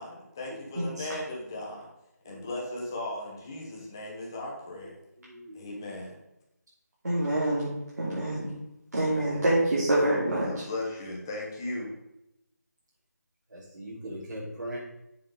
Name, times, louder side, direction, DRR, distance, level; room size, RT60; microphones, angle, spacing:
voice 1, 0.0-1.9 2.2-5.0 5.5-6.2 9.0-9.4 10.4-11.9, left 2 dB, 10° left, -3 dB, 1.1 m, -37 dB
voice 2, 0.8-1.1 7.0-8.5 8.9-10.5, right 1 dB, 65° right, -8 dB, 3.0 m, -26 dB
voice 3, 5.2-5.7 7.4-7.6 13.5-14.8, equal, 85° right, -8 dB, 3.5 m, -40 dB
7.1 x 6.3 x 5.4 m, 0.87 s
figure-of-eight pair, 180°, 9 cm